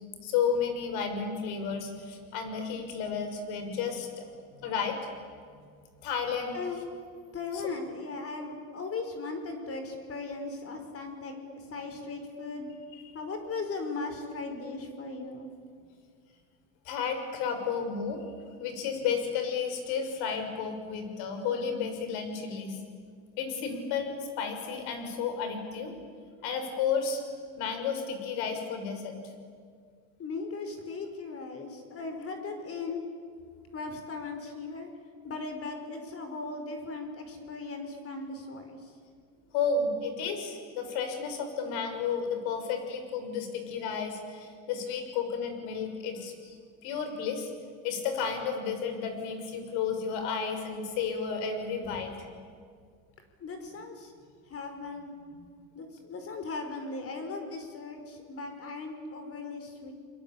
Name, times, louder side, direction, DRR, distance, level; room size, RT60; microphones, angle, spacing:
voice 1, 0.0-4.2 4.6-5.0 6.0-6.6 7.5-7.6 13.0-13.2 16.8-18.2 18.6-22.8 23.4-25.9 26.4-27.2 27.6-29.2 39.5-46.6 46.8-47.5 47.8-52.3, left 6 dB, 65° left, 6 dB, 6.3 m, -32 dB
voice 2, 7.3-12.7 13.1-15.5 30.2-33.0 33.7-34.9 35.2-38.9 53.4-54.1 54.5-55.4 55.7-59.9, left 3 dB, 35° left, 6 dB, 5.2 m, -38 dB
30.0 x 22.0 x 8.9 m, 2.1 s
supercardioid pair, 115°, 42 cm